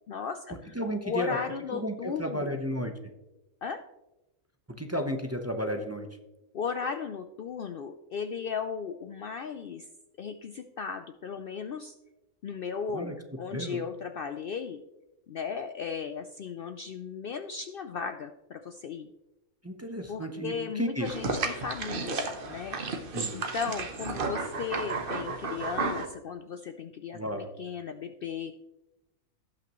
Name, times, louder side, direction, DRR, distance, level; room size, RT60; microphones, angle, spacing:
voice 1, 0.1-0.7 1.0-2.6 3.6-3.8 6.5-9.9 10.2-11.9 12.4-14.8 15.3-19.1 20.1-22.8 23.3-27.2 27.6-28.5, left 6 dB, 70° left, 7 dB, 0.5 m, -36 dB
voice 2, 0.7-1.4 1.7-2.9 4.8-6.1 12.9-13.1 13.5-13.8 19.6-21.3 23.1-23.3 27.1-27.5, equal, 15° right, 4 dB, 0.6 m, -33 dB
sound 1, 21.0-26.1, right 4 dB, 45° right, 1.0 m, -33 dB
17.5 x 5.8 x 3.0 m, 0.97 s
omnidirectional pair, 1.5 m